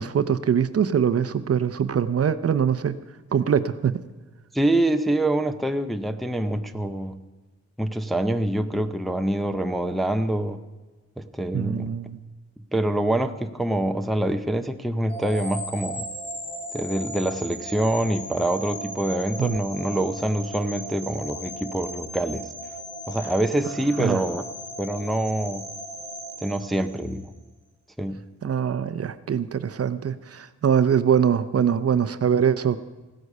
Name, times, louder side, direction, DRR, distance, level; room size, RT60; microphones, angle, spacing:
voice 1, 0.0-3.0 3.3-4.0 11.5-12.2 19.4-19.6 24.0-24.2 28.4-32.8, right 8 dB, 55° right, 12 dB, 0.6 m, -23 dB
voice 2, 4.5-7.2 7.8-10.6 11.2-11.9 12.7-16.1 16.7-22.5 23.1-24.5 24.8-25.6 26.4-27.3 28.0-28.2, right 1 dB, ahead, 7 dB, 0.6 m, -25 dB
sound 1, 15.1-27.2, right 1 dB, 40° left, 2.6 m, -37 dB
16.0 x 13.0 x 5.4 m, 1.2 s
wide cardioid pair, 175°, 29 cm